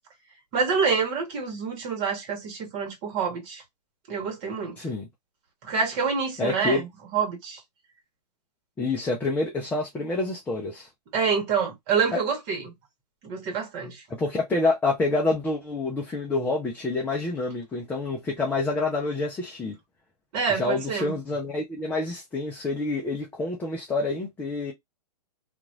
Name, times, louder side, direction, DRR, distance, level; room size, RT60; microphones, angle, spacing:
voice 1, 0.5-3.6 4.1-4.8 5.6-6.9 7.1-7.6 11.1-12.7 13.2-14.0 20.3-21.2, right 5 dB, 35° right, 1.5 m, -27 dB
voice 2, 4.8-5.1 6.4-6.8 8.8-10.9 14.1-19.7 20.5-24.7, left 3 dB, 10° left, 0.7 m, -27 dB
2.9 x 2.5 x 2.6 m
hypercardioid pair, 135°, 21 cm